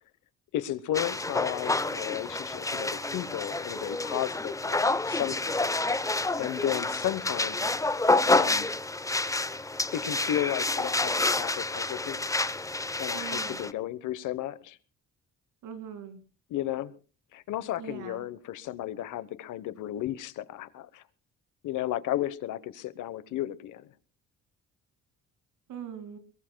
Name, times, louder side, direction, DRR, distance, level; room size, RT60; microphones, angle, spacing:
voice 1, 0.5-5.8 6.4-7.6 8.3-8.7 9.9-12.4 13.0-14.8 16.5-16.9 17.3-21.0 21.6-23.9, left 13 dB, 80° left, 1.1 m, -34 dB
sound 1, 0.9-13.7, left 2 dB, 10° left, 0.7 m, -28 dB
voice 2, 13.1-13.7 15.6-16.2 17.8-18.3 25.7-26.2, right 8 dB, 85° right, 2.5 m, -41 dB
22.5 x 21.5 x 2.2 m
cardioid pair, 90°, 30 cm